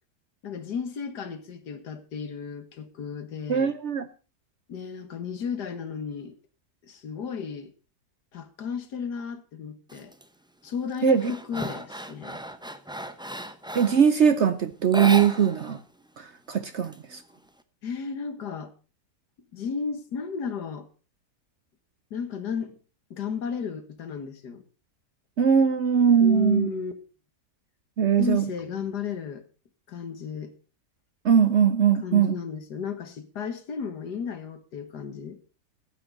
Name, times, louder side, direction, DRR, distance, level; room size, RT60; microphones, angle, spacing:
voice 1, 0.4-3.7 4.7-6.3 6.8-7.7 8.3-10.1 10.6-12.4 17.8-18.7 19.5-20.9 22.1-22.8 23.1-24.6 26.2-26.9 28.2-29.4 29.9-30.5 32.0-35.4, left 6 dB, 75° left, 2.0 m, -34 dB
voice 2, 3.5-4.1 11.0-11.2 13.7-15.8 16.2-17.2 25.4-26.7 28.0-28.4 31.2-32.3, right 7 dB, 55° right, 0.8 m, -21 dB
sound 1, 9.9-10.2 10.7-14.1 14.8-15.8 16.1-16.2 16.5-17.5, right 1 dB, 5° right, 0.3 m, -35 dB
14.5 x 8.7 x 5.3 m
omnidirectional pair, 1.8 m